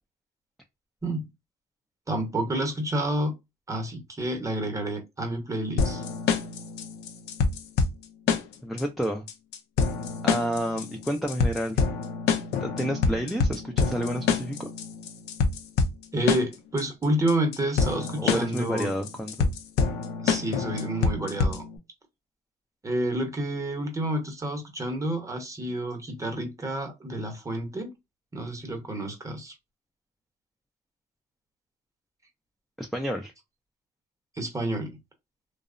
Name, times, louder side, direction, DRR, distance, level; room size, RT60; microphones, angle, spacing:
voice 1, 2.1-3.3 3.7-6.0 16.1-18.9 20.2-21.6 22.8-27.9 28.3-29.5 34.4-35.0, right 1 dB, 20° right, 0.7 m, -29 dB
sound 1, 5.8-21.8, left 5 dB, 80° left, 0.5 m, -27 dB
voice 2, 8.6-9.2 10.2-11.8 12.6-14.7 18.2-19.6 32.8-33.3, equal, ahead, 0.3 m, -30 dB
2.7 x 2.0 x 2.4 m
cardioid pair, 110°, 17 cm